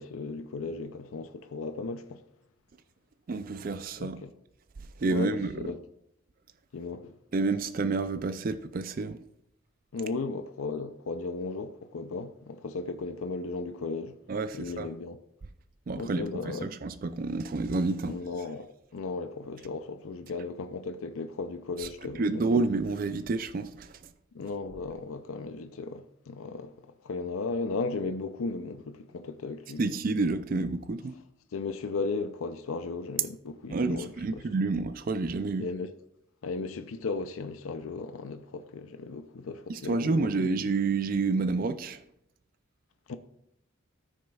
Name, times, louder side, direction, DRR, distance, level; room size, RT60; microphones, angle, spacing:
voice 1, 0.0-2.2 4.0-4.3 5.1-5.8 6.7-7.1 9.9-14.1 14.5-15.2 16.0-16.7 18.1-22.5 24.3-26.7 27.0-29.9 31.5-34.4 35.6-35.9 36.4-40.3 43.1-43.2, left 3 dB, 85° left, 0.5 m, -36 dB
voice 2, 3.3-4.2 5.0-5.6 7.3-9.2 14.3-14.9 15.9-18.2 21.8-21.9 22.1-24.0 29.8-31.1 33.7-35.7 39.7-42.0, right 3 dB, 45° right, 0.4 m, -29 dB
14.0 x 6.3 x 2.3 m
head